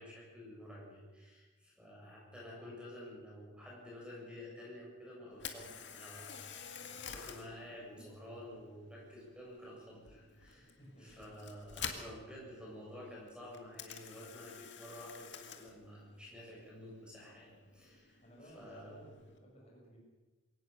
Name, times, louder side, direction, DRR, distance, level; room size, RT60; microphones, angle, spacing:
voice 1, 0.0-19.0, left 1 dB, 5° right, -4 dB, 7.3 m, -51 dB
Camera, 5.3-19.4, left 7 dB, 65° left, 2.2 m, -50 dB
voice 2, 10.6-11.3 18.2-20.0, equal, 35° left, -2 dB, 6.4 m, -57 dB
23.0 x 18.0 x 6.7 m, 1.2 s
head